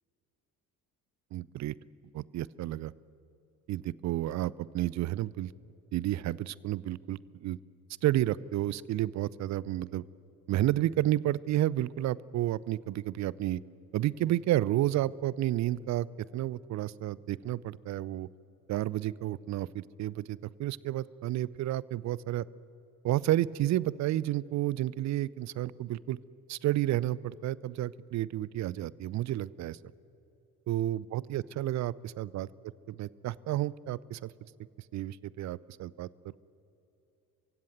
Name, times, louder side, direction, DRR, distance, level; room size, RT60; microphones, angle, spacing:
voice 1, 1.3-1.7 2.1-2.9 3.7-5.5 5.9-7.6 8.0-10.0 10.5-13.6 13.9-16.1 16.3-18.3 18.7-22.5 23.0-26.2 26.5-29.8 30.7-32.5 32.9-34.3 34.9-36.1, right 14 dB, 40° right, 22 dB, 0.6 m, -31 dB
28.0 x 16.0 x 9.3 m, 2.9 s
figure-of-eight pair, 50°, 45 cm